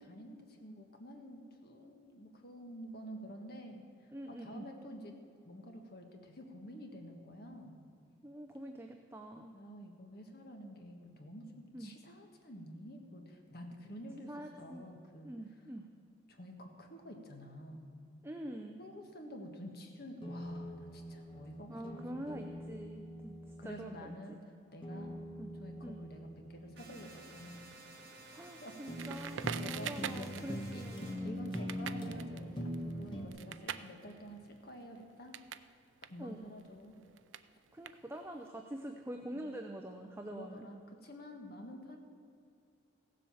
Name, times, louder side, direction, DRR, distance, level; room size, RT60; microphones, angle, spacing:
voice 1, 0.0-5.2 5.4-7.8 9.3-15.3 16.3-17.9 18.8-22.6 23.6-24.4 24.7-25.2 25.6-27.6 28.6-28.8 29.5-30.8 31.2-35.3 36.1-37.0 39.3-39.6 40.3-42.0, equal, 50° left, 3 dB, 1.5 m, -49 dB
voice 2, 4.1-4.6 8.2-9.6 11.7-11.9 14.3-14.9 15.2-15.9 18.2-18.8 21.7-23.3 23.6-24.4 25.4-25.5 25.8-26.0 28.3-31.4 36.2-36.5 37.7-40.7, right 1 dB, 10° right, 4 dB, 0.5 m, -45 dB
sound 1, 20.2-24.0 24.8-27.5 28.3-28.5 28.9-33.3, equal, 25° left, 1.2 m, -43 dB
sound 2, 26.8-31.2, right 2 dB, 55° right, 2.5 m, -54 dB
Crackle, 29.0-35.7 36.0-38.4, right 8 dB, 75° right, 0.5 m, -45 dB
16.0 x 7.6 x 7.1 m, 2.5 s
head